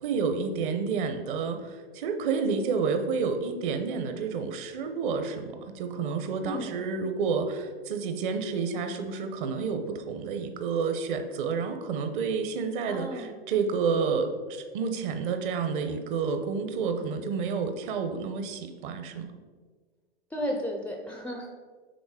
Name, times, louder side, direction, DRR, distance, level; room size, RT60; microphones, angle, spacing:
voice 1, 0.0-19.3, right 5 dB, 50° right, 7 dB, 0.9 m, -30 dB
voice 2, 6.4-6.8 12.9-13.3 20.3-21.5, equal, 5° left, 1 dB, 0.4 m, -33 dB
6.3 x 4.1 x 4.8 m, 1.4 s
hypercardioid pair, 120°, 32 cm